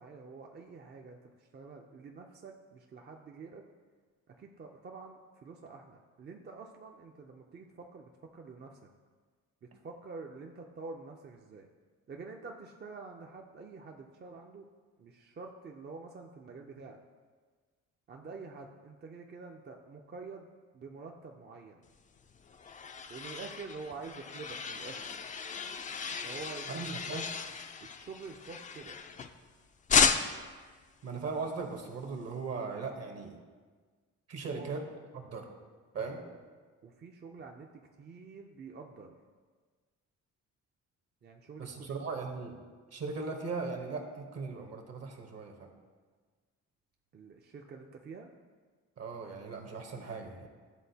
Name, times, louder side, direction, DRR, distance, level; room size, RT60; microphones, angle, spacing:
voice 1, 0.0-3.6 4.4-8.8 9.6-11.7 12.1-14.7 15.0-17.0 18.1-20.5 20.7-21.8 23.1-25.1 26.2-27.2 27.8-29.0 34.4-34.7 36.2-36.3 36.8-37.7 38.0-39.2 41.2-42.0 43.0-43.2 47.1-48.3, right 4 dB, 35° right, 2 dB, 0.5 m, -47 dB
sound 1, 22.2-29.5 29.9-30.6, left 6 dB, 25° left, 0.3 m, -33 dB
voice 2, 26.7-27.3 31.0-33.4 34.3-34.8 35.1-35.5 35.9-36.2 41.6-42.6 42.9-45.7 49.0-50.5, right 4 dB, 55° right, 3 dB, 1.0 m, -38 dB
11.0 x 3.7 x 2.8 m, 1.5 s
cardioid pair, 90°, 30 cm